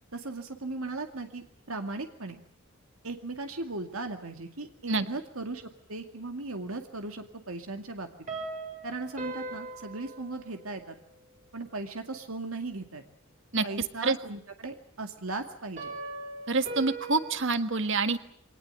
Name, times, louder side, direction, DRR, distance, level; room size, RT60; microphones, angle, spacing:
voice 1, 0.1-2.4 3.0-8.1 8.8-11.0 11.5-13.0 13.6-15.9, right 2 dB, 80° right, 5 dB, 2.2 m, -37 dB
sound 1, 8.3-10.9 15.8-17.3, right 2 dB, 35° right, 5.2 m, -39 dB
voice 2, 16.5-18.2, right 3 dB, 60° right, 10 dB, 1.5 m, -26 dB
24.0 x 19.0 x 8.9 m, 0.63 s
head